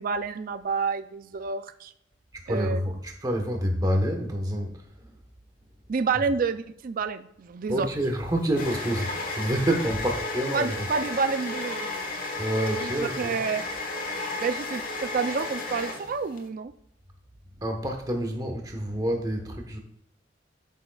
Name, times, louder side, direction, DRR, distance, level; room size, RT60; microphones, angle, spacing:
voice 1, 0.0-1.9 2.5-2.8 5.9-7.9 10.5-11.9 12.8-12.9 13.2-13.6 14.4-16.7, right 5 dB, 45° right, 11 dB, 0.4 m, -29 dB
voice 2, 2.3-5.1 6.1-6.2 7.7-10.9 12.4-13.4 17.6-19.8, equal, 20° right, 3 dB, 1.1 m, -28 dB
sound 1, 7.7-16.4, left 2 dB, 50° left, 1.4 m, -33 dB
12.0 x 6.4 x 2.3 m, 0.77 s
head